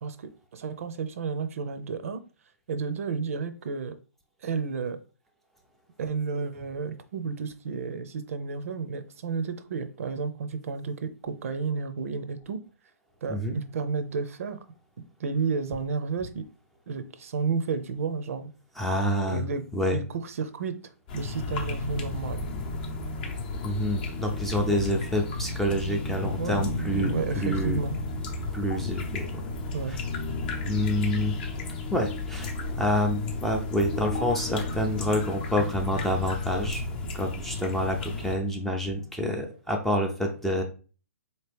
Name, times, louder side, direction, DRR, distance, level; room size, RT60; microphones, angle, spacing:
voice 1, 0.0-2.2 2.7-4.0 4.4-5.0 6.0-12.6 13.2-14.6 15.2-16.5 16.9-18.5 19.3-19.6 19.9-20.8 21.1-22.4 24.7-24.8 26.4-26.6 27.0-27.9 29.7-30.0, right 5 dB, 65° right, 10 dB, 0.5 m, -31 dB
voice 2, 18.8-19.4 19.7-20.0 23.6-27.1 27.4-27.8 28.5-29.3 30.6-31.3 31.9-32.5 32.8-36.8 37.1-40.6, left 1 dB, 5° left, 1 dB, 0.4 m, -27 dB
sound 1, 21.1-38.4, left 3 dB, 35° left, 0.7 m, -33 dB
4.1 x 2.9 x 3.3 m, 0.36 s
hypercardioid pair, 150°, 8 cm